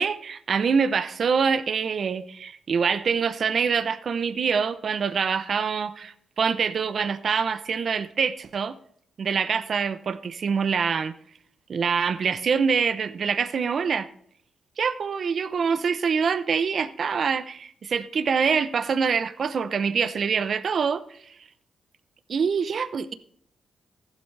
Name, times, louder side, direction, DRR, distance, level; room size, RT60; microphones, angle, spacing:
voice 1, 0.0-8.7 9.2-11.1 11.7-14.1 14.8-21.0 22.3-23.1, right 6 dB, 60° right, 0.8 m, -25 dB
15.0 x 11.5 x 3.4 m
cardioid pair, 65°, 0 cm